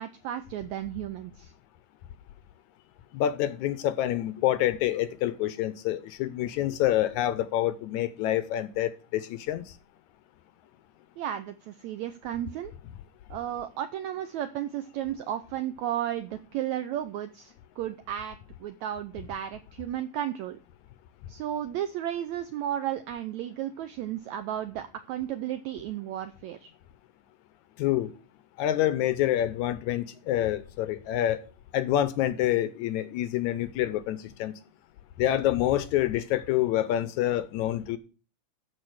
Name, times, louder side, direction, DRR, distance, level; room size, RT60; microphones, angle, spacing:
voice 1, 0.0-1.5 11.2-12.7 13.3-20.6 21.3-26.7, right 11 dB, 80° right, 1.7 m, -34 dB
voice 2, 3.1-9.6 27.8-28.1 28.6-31.4 31.7-34.5 35.2-38.0, left 12 dB, 75° left, 1.8 m, -27 dB
13.0 x 4.9 x 6.4 m
omnidirectional pair, 3.9 m